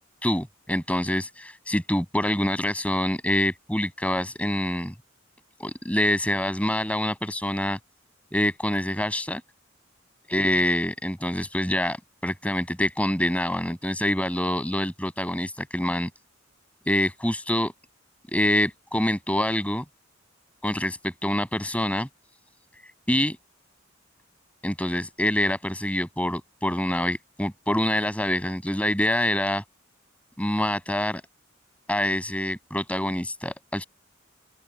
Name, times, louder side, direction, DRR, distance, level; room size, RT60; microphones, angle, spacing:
voice 1, 0.2-4.9 5.6-7.8 8.3-9.4 10.3-12.0 12.2-16.1 16.9-17.7 18.3-19.8 20.6-22.1 23.1-23.4 24.6-29.6 30.4-31.2 31.9-33.8, left 1 dB, 5° left, 7.9 m, -26 dB
open air
head